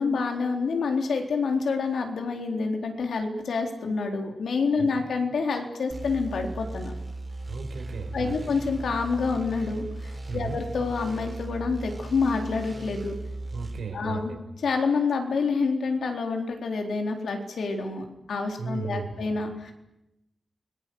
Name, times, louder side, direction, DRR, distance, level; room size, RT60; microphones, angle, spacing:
voice 1, 0.0-6.9 8.1-13.1 13.9-14.3 14.6-19.7, left 4 dB, 80° left, 3 dB, 4.1 m, -27 dB
sound 1, 5.9-13.8, right 2 dB, 25° right, 4.3 m, -37 dB
voice 2, 7.5-8.5 10.3-10.6 13.5-14.4 18.6-19.1, right 4 dB, 85° right, 5 dB, 5.2 m, -35 dB
29.0 x 21.0 x 8.0 m, 0.90 s
wide cardioid pair, 150°, 0 cm